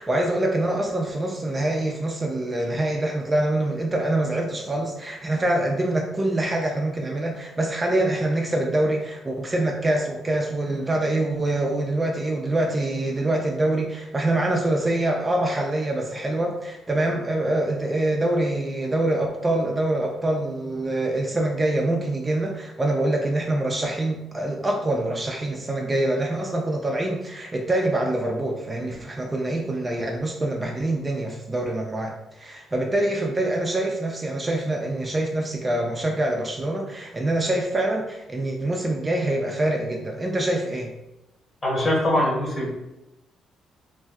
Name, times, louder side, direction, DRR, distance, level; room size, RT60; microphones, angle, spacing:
voice 1, 0.0-32.1 32.4-40.9, right 1 dB, 25° right, 0 dB, 0.4 m, -25 dB
voice 2, 41.6-42.7, left 1 dB, 30° left, -3 dB, 1.1 m, -22 dB
2.6 x 2.2 x 3.3 m, 0.93 s
cardioid pair, 90°, 0 cm